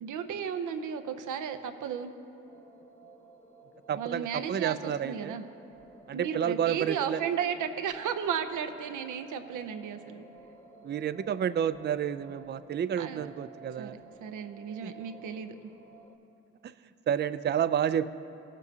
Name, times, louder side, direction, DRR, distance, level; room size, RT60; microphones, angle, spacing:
voice 1, 0.0-2.1 4.0-5.4 6.1-10.2 13.0-13.3 13.8-15.6, right 7 dB, 75° right, 7 dB, 0.7 m, -34 dB
sound 1, 2.4-16.2, right 4 dB, 20° left, 1.1 m, -53 dB
voice 2, 3.9-5.3 6.1-7.2 10.8-14.0 14.8-14.9 17.1-18.1, right 9 dB, 35° right, 14 dB, 0.4 m, -30 dB
17.0 x 7.2 x 2.8 m, 2.7 s
supercardioid pair, 50°, 31 cm